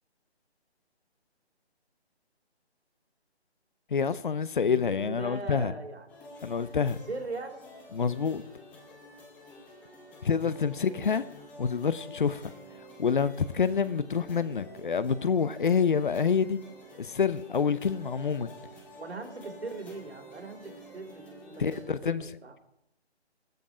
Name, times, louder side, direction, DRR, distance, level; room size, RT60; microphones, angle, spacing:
voice 1, 3.9-5.7 6.4-7.0 7.9-8.4 10.2-11.2 11.6-12.4 13.0-16.6 17.0-18.5 21.6-22.3, left 6 dB, 50° left, 16 dB, 0.8 m, -27 dB
voice 2, 4.6-6.2 7.1-7.6 10.7-11.1 18.9-20.6 20.9-22.5, right 3 dB, 75° right, 4 dB, 3.9 m, -40 dB
sound 1, 6.1-21.8, equal, 5° left, 0.8 m, -49 dB
13.5 x 13.5 x 5.0 m, 0.79 s
figure-of-eight pair, 160°, 33 cm